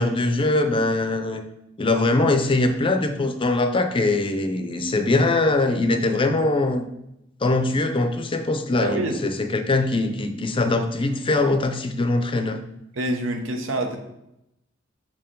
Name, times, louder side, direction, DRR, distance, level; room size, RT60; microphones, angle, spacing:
voice 1, 0.0-1.4 1.8-6.9 7.4-12.6, left 2 dB, 25° left, 6 dB, 0.5 m, -22 dB
voice 2, 8.8-9.2 12.9-14.0, right 1 dB, 85° right, 4 dB, 0.9 m, -26 dB
5.9 x 4.5 x 3.7 m, 0.83 s
head